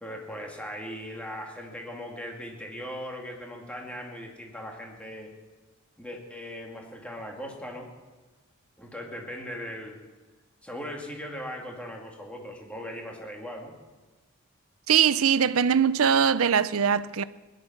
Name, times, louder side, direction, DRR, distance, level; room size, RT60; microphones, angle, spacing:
voice 1, 0.0-5.3 6.0-7.9 8.8-10.0 10.6-13.7, equal, 5° left, 2.3 m, -39 dB
voice 2, 14.9-17.2, right 7 dB, 70° right, 0.5 m, -22 dB
19.0 x 11.0 x 5.9 m
head